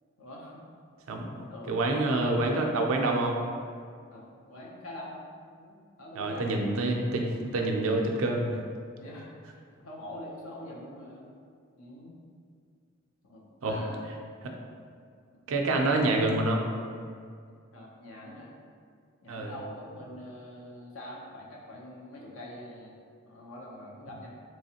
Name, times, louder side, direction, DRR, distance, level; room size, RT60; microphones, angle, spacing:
voice 1, 0.2-0.6 1.2-1.9 4.1-5.2 5.6-6.7 9.0-11.3 11.8-12.1 13.2-14.0 17.7-18.5 19.2-22.9 23.2-24.3, left 1 dB, 85° left, -3 dB, 0.7 m, -44 dB
voice 2, 1.7-3.4 6.2-8.6 13.6-13.8 15.5-16.6 19.3-19.5, right 2 dB, 80° right, 1 dB, 0.5 m, -27 dB
3.4 x 3.1 x 2.8 m, 2.2 s
head